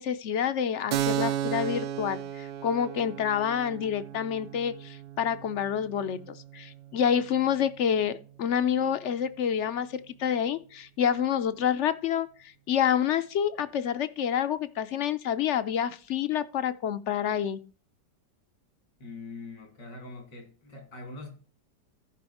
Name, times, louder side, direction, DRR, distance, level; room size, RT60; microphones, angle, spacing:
voice 1, 0.0-12.3 12.7-17.6, left 8 dB, 60° left, 0.7 m, -28 dB
Keyboard (musical), 0.9-8.2, right 11 dB, 80° right, 1.3 m, -35 dB
voice 2, 19.0-21.3, left 3 dB, 90° left, 3.4 m, -43 dB
14.0 x 5.4 x 4.2 m
omnidirectional pair, 1.8 m